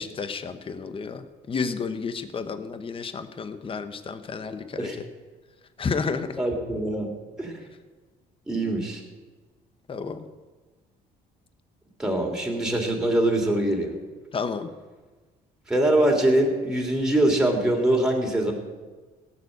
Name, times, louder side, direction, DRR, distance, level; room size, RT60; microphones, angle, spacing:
voice 1, 0.0-4.9 5.8-6.4 9.9-10.3 14.3-14.7, left 5 dB, 30° left, 10 dB, 1.1 m, -31 dB
voice 2, 6.4-7.1 7.4-7.6 8.5-9.0 12.0-13.9 15.7-18.5, right 1 dB, 5° right, 0 dB, 3.2 m, -23 dB
17.0 x 7.2 x 8.1 m, 1.3 s
cardioid pair, 110°, 17 cm